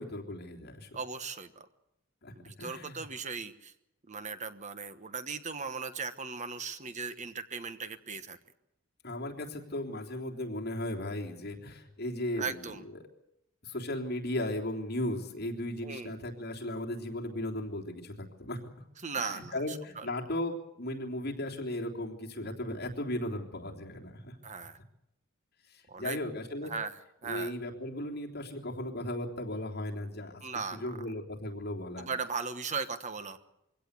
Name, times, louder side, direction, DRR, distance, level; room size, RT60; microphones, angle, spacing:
voice 1, 0.0-0.9 2.2-3.0 9.0-13.1 13.6-18.6 19.1-24.3 25.6-26.7 27.2-30.4 30.7-32.1, left 1 dB, 50° left, 0 dB, 3.4 m, -36 dB
voice 2, 0.9-1.7 2.3-3.7 4.1-8.4 12.4-12.8 15.8-16.1 19.0-20.1 24.4-24.8 25.9-26.2 26.7-27.5 30.4-30.9 32.0-33.4, right 5 dB, 35° right, 10 dB, 1.2 m, -38 dB
23.5 x 17.0 x 8.3 m, 0.84 s
head